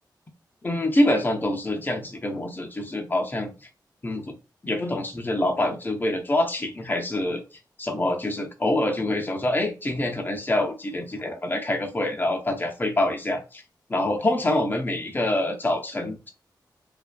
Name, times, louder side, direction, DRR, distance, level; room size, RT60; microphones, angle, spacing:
voice 1, 0.6-3.7 4.0-4.3 4.6-7.4 7.8-13.6 13.9-16.3, left 1 dB, 25° left, 3 dB, 0.6 m, -25 dB
2.4 x 2.4 x 2.2 m, 0.30 s
cardioid pair, 55°, 8 cm